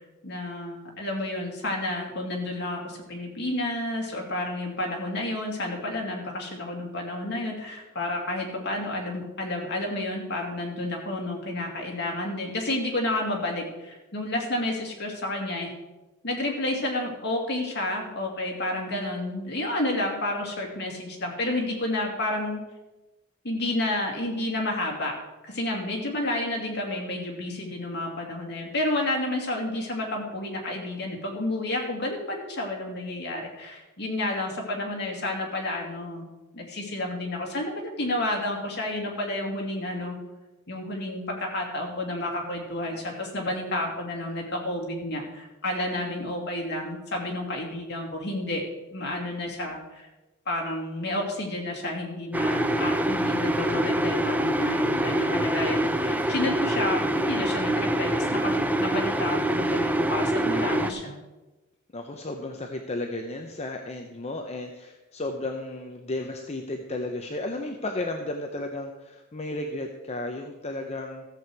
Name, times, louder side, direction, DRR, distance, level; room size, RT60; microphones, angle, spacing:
voice 1, 0.2-15.7 16.2-22.6 23.4-25.1 25.4-36.3 36.5-40.2 40.7-48.6 48.9-50.1 50.5-61.2, left 1 dB, 55° left, 0 dB, 2.5 m, -30 dB
sound 1, 52.3-60.9, right 1 dB, 10° right, 0.6 m, -25 dB
voice 2, 61.9-71.2, left 2 dB, 30° left, 4 dB, 0.7 m, -33 dB
14.5 x 7.8 x 4.7 m, 1.1 s
head